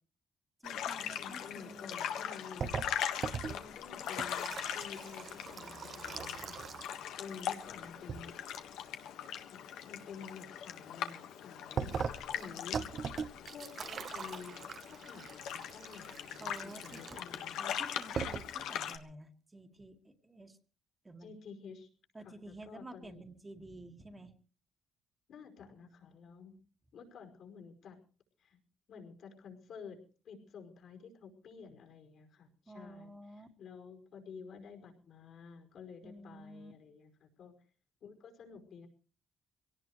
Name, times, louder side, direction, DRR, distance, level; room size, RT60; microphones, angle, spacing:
sound 1, 0.6-19.0, left 9 dB, 90° left, 1.6 m, -41 dB
voice 1, 0.6-2.0 16.4-17.2 17.6-20.6 21.0-21.3 22.1-24.4 32.7-33.5 36.0-36.7, right 1 dB, 20° right, 4 dB, 2.0 m, -51 dB
voice 2, 1.2-2.9 3.5-6.6 7.1-8.3 9.5-12.0 12.3-12.8 13.5-17.6 21.2-21.9 22.2-23.3 25.3-26.6 26.9-28.0 28.4-28.6 28.9-30.0 30.2-37.5 38.0-38.9, left 6 dB, 70° left, 3 dB, 5.2 m, -51 dB
sound 2, 2.6-7.1 7.3-8.2 11.8-17.5 17.9-18.0 18.2-18.6, right 6 dB, 55° right, 1.1 m, -41 dB
23.5 x 18.0 x 3.2 m, 0.38 s
cardioid pair, 90°, 0 cm